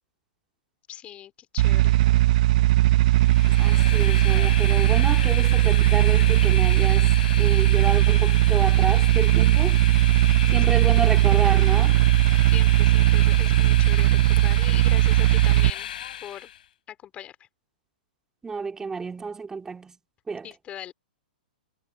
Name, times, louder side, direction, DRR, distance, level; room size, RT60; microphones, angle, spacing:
voice 1, 0.9-2.0 3.1-3.3 10.7-11.1 12.5-15.9 16.2-16.5 16.9-17.4 20.4-20.9, left 11 dB, 25° left, 3.3 m, -41 dB
sound 1, 1.6-15.7, right 16 dB, 55° right, 0.6 m, -18 dB
Train, 3.1-16.6, left 10 dB, 70° left, 4.2 m, -35 dB
voice 2, 3.6-7.1 7.4-9.8 10.5-12.0 18.4-20.0 20.3-20.5, right 4 dB, 10° right, 2.9 m, -30 dB
hypercardioid pair, 125°, 5 cm